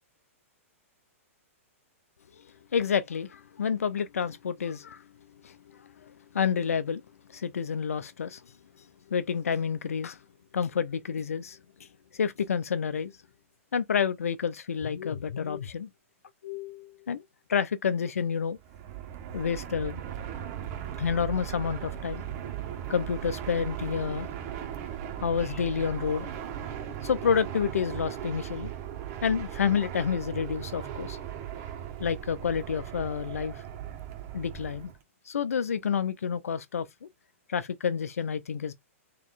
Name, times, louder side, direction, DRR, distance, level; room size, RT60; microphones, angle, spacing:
voice 1, 2.7-5.0 5.4-7.0 7.3-8.4 9.1-10.2 10.5-13.1 13.7-15.9 16.4-17.2 17.5-18.6 19.3-20.0 21.0-22.2 22.9-24.3 25.2-26.3 27.0-28.7 29.2-31.2 32.0-33.6 34.3-34.9 35.2-37.1 37.5-38.7, left 7 dB, 85° left, 0.6 m, -29 dB
Fixed-wing aircraft airplane, 18.6-35.0, right 10 dB, 40° right, 1.4 m, -38 dB
4.2 x 3.0 x 4.0 m
hypercardioid pair, 130°, 8 cm